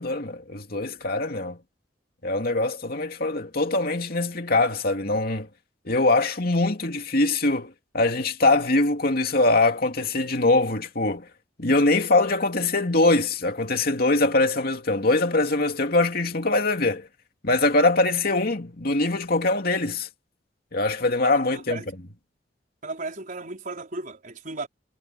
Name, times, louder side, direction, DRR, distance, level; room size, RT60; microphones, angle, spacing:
voice 1, 0.0-1.6 2.2-5.5 5.8-11.3 11.6-17.1 17.4-20.1 20.7-21.8, left 2 dB, 55° left, 2.7 m, -23 dB
voice 2, 21.5-21.8 22.8-24.7, right 3 dB, 50° right, 4.7 m, -35 dB
head